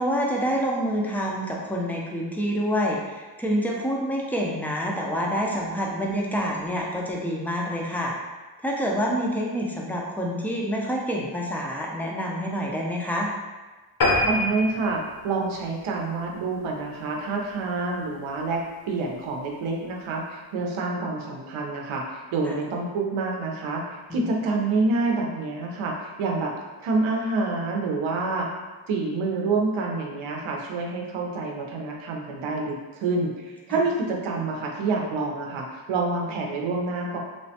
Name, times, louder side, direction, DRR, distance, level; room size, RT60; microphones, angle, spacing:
voice 1, 0.0-8.1 8.6-13.3 22.4-22.6 24.1-24.3 33.7-33.8, equal, 5° left, -2 dB, 0.3 m, -27 dB
sound 1, 14.0-16.8 17.2-17.4 17.9-18.0 18.3-18.4 18.6-18.7, left 1 dB, 50° left, 0.7 m, -26 dB
voice 2, 14.2-26.5 26.8-28.5 28.9-37.2, right 3 dB, 85° right, 0 dB, 0.6 m, -27 dB
3.1 x 2.1 x 2.7 m, 1.2 s
wide cardioid pair, 95°, 47 cm